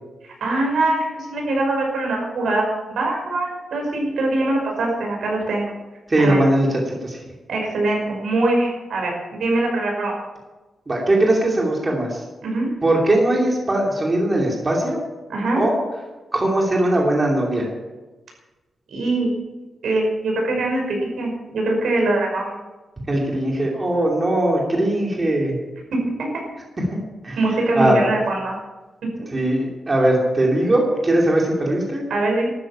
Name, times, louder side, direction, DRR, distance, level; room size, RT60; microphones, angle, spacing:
voice 1, 0.2-5.7 6.2-6.4 7.5-10.1 12.4-12.7 15.3-15.6 18.9-19.3 19.8-22.6 25.9-26.3 27.4-28.6 29.2-29.3 32.1-32.5, right 2 dB, 80° right, 0 dB, 5.5 m, -22 dB
voice 2, 6.1-7.2 10.9-12.2 12.8-15.0 15.6-15.7 16.3-17.7 23.1-25.6 26.9-27.0 27.2-27.4 27.8-28.1 29.3-32.0, right 1 dB, 25° right, -2 dB, 2.8 m, -20 dB
13.0 x 10.0 x 8.7 m, 1.2 s
wide cardioid pair, 165°, 0 cm